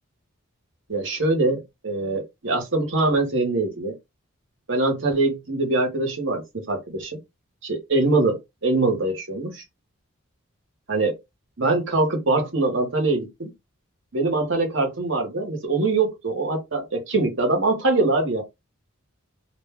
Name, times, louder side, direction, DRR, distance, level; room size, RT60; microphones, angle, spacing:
voice 1, 0.9-3.9 4.7-7.2 7.6-9.6 10.9-11.2 11.6-13.5 14.1-18.4, right 2 dB, 55° right, 1.0 m, -23 dB
2.5 x 2.1 x 3.5 m
head